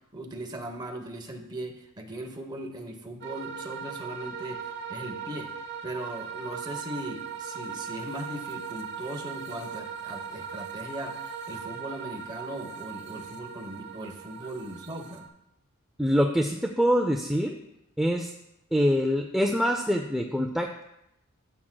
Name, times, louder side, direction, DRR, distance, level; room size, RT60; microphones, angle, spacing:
voice 1, 0.1-5.5 5.8-15.3, right 1 dB, 20° right, 4 dB, 0.9 m, -39 dB
sound 1, 3.2-15.3, right 6 dB, 50° right, 1.0 m, -39 dB
voice 2, 16.0-17.6 18.0-18.3 18.7-20.8, equal, ahead, 3 dB, 0.3 m, -25 dB
13.5 x 7.3 x 2.2 m, 0.84 s
head